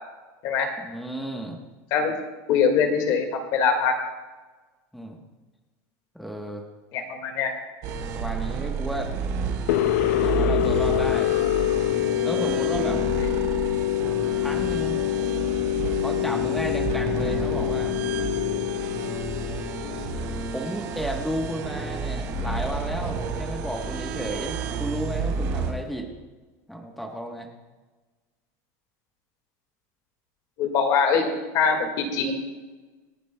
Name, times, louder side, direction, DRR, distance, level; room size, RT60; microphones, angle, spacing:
voice 1, 0.8-1.6 4.9-5.2 6.1-6.6 8.1-9.1 10.2-11.3 12.2-13.0 14.4-15.0 16.0-18.0 20.5-26.1 26.7-27.5, equal, ahead, 1 dB, 1.1 m, -33 dB
voice 2, 2.5-3.9 6.9-7.5 30.6-31.3 31.5-32.3, left 6 dB, 45° left, 4 dB, 1.9 m, -22 dB
sound 1, 7.8-25.7, right 5 dB, 50° right, 3.8 m, -31 dB
sound 2, 9.7-20.6, left 13 dB, 80° left, 0.5 m, -25 dB
27.0 x 9.2 x 2.2 m, 1.2 s
supercardioid pair, 160°, 9 cm